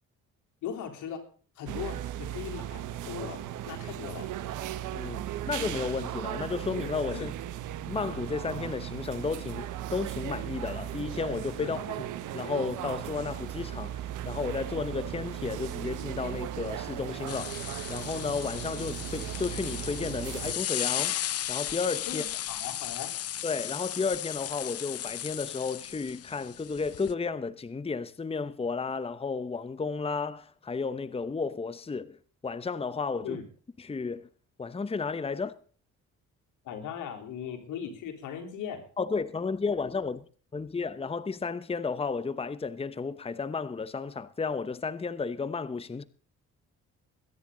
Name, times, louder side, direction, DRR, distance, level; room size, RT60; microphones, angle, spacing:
voice 1, 0.6-1.3 1.6-4.3 7.1-7.3 11.6-12.1 22.1-23.1 33.2-33.4 36.6-38.8, left 8 dB, 90° left, 3.7 m, -39 dB
sound 1, 1.7-20.5, right 12 dB, 85° right, 1.4 m, -37 dB
voice 2, 4.9-7.3 7.9-11.8 12.3-17.6 17.9-21.2 21.5-22.2 23.4-32.2 32.4-33.4 33.8-34.3 34.6-35.6 39.0-40.2 40.5-46.0, left 4 dB, 20° left, 0.9 m, -33 dB
sound 2, 17.3-27.1, left 11 dB, 55° left, 0.6 m, -35 dB
21.5 x 10.5 x 3.9 m
cardioid pair, 90°, 30 cm